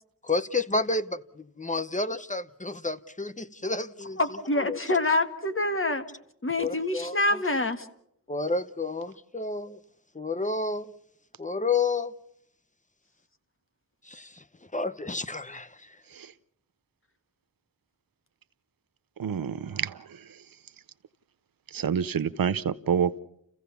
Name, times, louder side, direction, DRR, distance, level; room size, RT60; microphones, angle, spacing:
voice 1, 0.3-4.2 4.7-4.8 6.6-7.1 8.3-9.8 10.1-10.9 11.4-12.1 14.1-14.3 14.7-15.7, left 3 dB, 20° left, 0.8 m, -30 dB
voice 2, 4.2-6.0 6.4-7.9, left 2 dB, 40° left, 1.6 m, -26 dB
voice 3, 19.2-20.3 21.7-23.1, right 7 dB, 90° right, 0.7 m, -28 dB
29.0 x 15.5 x 7.0 m
wide cardioid pair, 60°, 33 cm